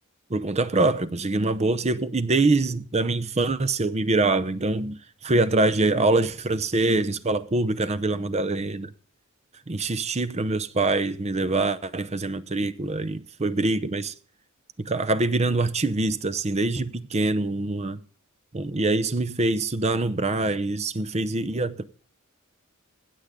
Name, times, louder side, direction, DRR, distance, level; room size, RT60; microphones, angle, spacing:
voice 1, 0.3-8.9 9.7-14.1 14.8-18.0 18.5-21.8, right 2 dB, 30° right, 0.8 m, -24 dB
16.5 x 8.0 x 3.7 m
head